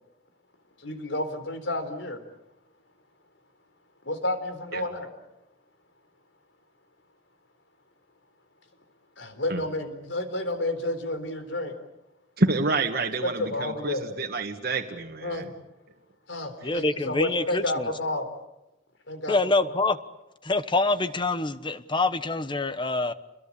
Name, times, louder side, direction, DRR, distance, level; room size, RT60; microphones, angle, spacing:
voice 1, 0.8-2.2 4.0-5.1 9.2-11.8 13.2-14.1 15.2-15.5 16.3-18.3 19.1-19.8, left 1 dB, 90° left, 9 dB, 4.1 m, -31 dB
voice 2, 12.4-15.5, right 2 dB, 60° right, 2 dB, 1.8 m, -28 dB
voice 3, 16.6-17.9 19.3-20.0 20.4-23.1, left 2 dB, 25° left, 12 dB, 1.2 m, -25 dB
29.0 x 22.0 x 8.6 m, 0.93 s
head